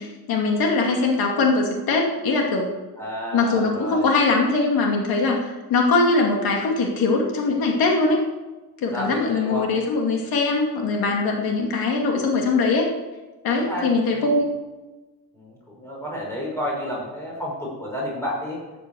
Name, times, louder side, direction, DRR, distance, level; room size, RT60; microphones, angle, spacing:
voice 1, 0.0-2.7 3.3-8.2 8.8-12.9 13.4-14.5, left 3 dB, 80° left, 1 dB, 2.6 m, -21 dB
voice 2, 3.0-4.1 8.9-9.7 13.6-14.3 15.3-18.6, equal, 5° left, -4 dB, 5.6 m, -31 dB
12.5 x 8.9 x 7.8 m, 1.2 s
cardioid pair, 175°, 35 cm